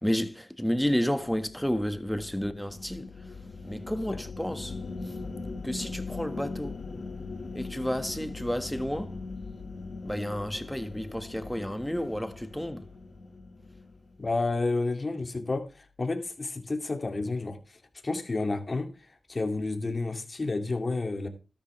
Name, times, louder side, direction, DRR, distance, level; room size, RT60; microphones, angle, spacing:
voice 1, 0.0-3.4 3.6-5.1 5.6-6.8 7.5-9.2 10.0-12.9, equal, 5° left, 1.6 m, -31 dB
sound 1, 0.8-14.3, left 3 dB, 65° left, 2.0 m, -41 dB
voice 2, 14.2-21.3, left 3 dB, 45° left, 2.4 m, -31 dB
13.0 x 10.5 x 3.3 m
cardioid pair, 45°, 0 cm